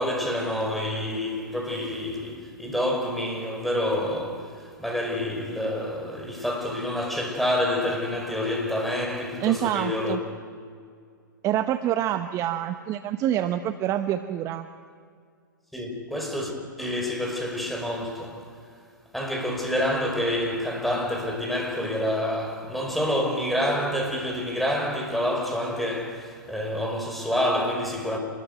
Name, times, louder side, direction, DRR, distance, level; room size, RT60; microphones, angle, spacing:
voice 1, 0.0-10.2 15.7-16.5 16.8-18.5 19.1-28.2, left 1 dB, ahead, 5.3 m, -28 dB
voice 2, 9.4-10.2 11.4-14.7, right 12 dB, 25° right, 0.9 m, -26 dB
27.5 x 21.0 x 8.1 m
figure-of-eight pair, 110°, 11 cm